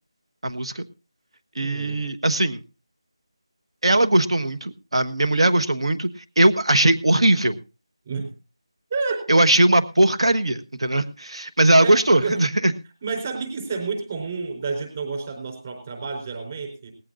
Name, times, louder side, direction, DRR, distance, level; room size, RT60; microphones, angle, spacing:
voice 1, 0.4-0.8 1.5-2.6 3.8-6.1 6.4-7.6 9.3-12.7, right 1 dB, 80° right, 9 dB, 1.4 m, -19 dB
voice 2, 1.6-2.0 8.1-8.3 8.9-9.3 11.8-12.4 13.0-16.9, right 4 dB, 25° right, 6 dB, 4.3 m, -30 dB
19.0 x 15.0 x 2.6 m, 0.29 s
figure-of-eight pair, 175°, 3 cm